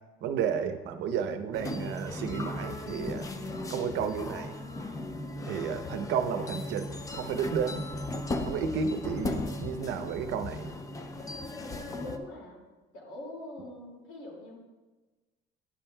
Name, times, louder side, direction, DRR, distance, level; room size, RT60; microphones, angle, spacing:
voice 1, 0.2-3.3 3.7-4.5 5.5-7.8 8.4-10.7, right 7 dB, 60° right, 8 dB, 0.7 m, -32 dB
sound 1, 1.5-12.2, left 2 dB, 15° left, 0.4 m, -37 dB
voice 2, 11.6-12.6 12.9-14.6, left 1 dB, 75° left, -2 dB, 2.2 m, -44 dB
10.0 x 7.2 x 2.2 m, 1.2 s
cardioid pair, 140°, 20 cm